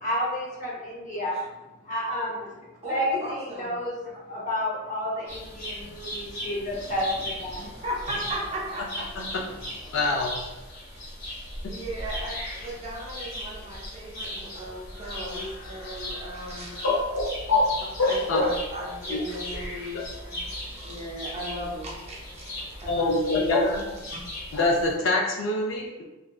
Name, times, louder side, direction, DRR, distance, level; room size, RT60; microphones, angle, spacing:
voice 1, 0.0-1.4 1.9-2.5 2.8-3.9 4.3-7.7, left 1 dB, 35° left, -6 dB, 0.8 m, -30 dB
voice 2, 2.8-3.7 5.2-5.3 7.6-9.2 11.7-16.8 18.1-20.4 20.7-23.7 24.1-24.2, right 1 dB, 30° right, -3 dB, 0.4 m, -37 dB
sound 1, 5.3-24.9, left 1 dB, 90° left, 0.9 m, -38 dB
voice 3, 9.9-10.4 16.8-18.6 19.1-19.2 19.9-20.1 22.9-24.0 24.5-26.1, left 2 dB, 65° left, -1 dB, 0.4 m, -25 dB
2.6 x 2.1 x 2.2 m, 1.0 s
head